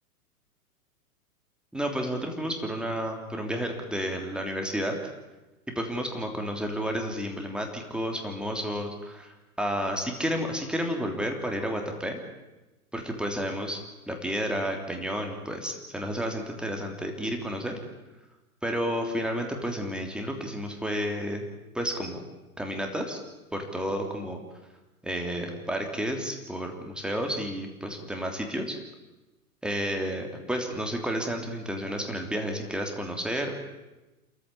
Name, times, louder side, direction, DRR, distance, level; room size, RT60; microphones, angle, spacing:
voice 1, 1.7-5.0 5.7-12.2 12.9-17.8 18.6-21.5 21.7-22.2 22.6-23.2 23.5-24.4 25.0-28.8 29.6-33.5, equal, ahead, 3 dB, 3.2 m, -31 dB
27.5 x 15.0 x 9.9 m, 1.1 s
hypercardioid pair, 125°, 45 cm